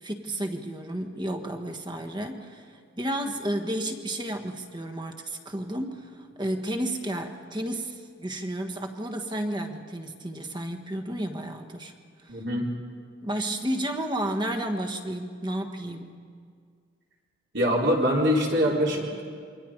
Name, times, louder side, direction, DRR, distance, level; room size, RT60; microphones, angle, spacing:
voice 1, 0.0-11.9 12.2-12.4 13.2-16.2, right 1 dB, 25° right, 5 dB, 1.4 m, -32 dB
voice 2, 12.3-12.7 17.5-19.2, equal, 65° right, -3 dB, 4.2 m, -24 dB
28.0 x 23.5 x 5.1 m, 2.1 s
head